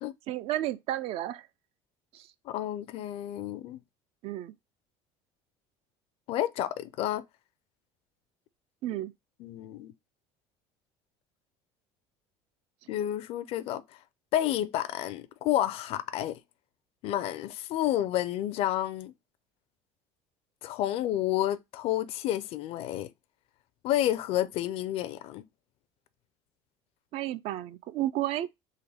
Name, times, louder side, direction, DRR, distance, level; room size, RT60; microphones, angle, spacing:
voice 1, 0.3-1.5 2.1-2.3 4.2-4.5 8.8-9.1 27.1-28.5, right 14 dB, 60° right, 0.4 m, -32 dB
voice 2, 2.5-3.8 6.3-7.2 9.4-9.9 12.9-13.8 14.3-16.4 17.0-19.1 20.6-23.1 23.8-25.4, left 12 dB, 60° left, 0.4 m, -30 dB
3.7 x 2.2 x 3.3 m
cardioid pair, 120°, 11 cm